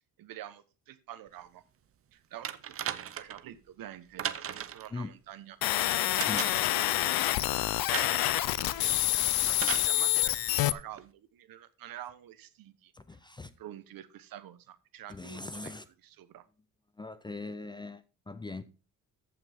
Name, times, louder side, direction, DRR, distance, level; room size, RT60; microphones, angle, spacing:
voice 1, 0.2-1.6 2.1-5.6 6.4-7.6 7.9-12.9 13.6-15.7 16.2-16.4, right 12 dB, 75° right, 1.1 m, -48 dB
sound 1, 2.4-3.4 4.2-4.9 6.2-6.8 7.9-8.3 9.6-9.9 11.0-11.1, right 10 dB, 40° right, 0.7 m, -36 dB
sound 2, 5.6-10.7, left 15 dB, 90° left, 0.6 m, -27 dB
voice 2, 6.2-6.5 12.9-13.5 15.1-15.9 17.0-18.6, left 3 dB, 15° left, 0.4 m, -41 dB
14.5 x 5.9 x 3.5 m
cardioid pair, 165°, 35 cm